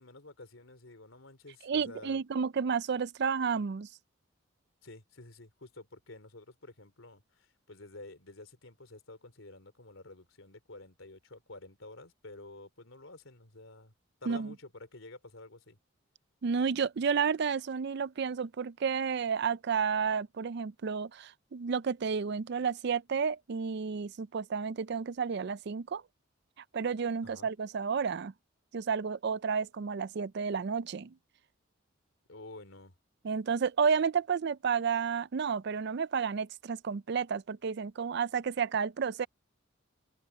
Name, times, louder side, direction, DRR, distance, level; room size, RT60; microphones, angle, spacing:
voice 1, 0.0-2.2 4.8-13.9 14.2-15.8 27.2-27.5 32.3-32.9, left 2 dB, 75° left, 3.4 m, -50 dB
voice 2, 1.6-3.9 14.3-14.5 16.4-26.0 26.7-28.3 28.7-31.1 33.2-39.3, right 6 dB, 55° right, 0.4 m, -31 dB
open air
head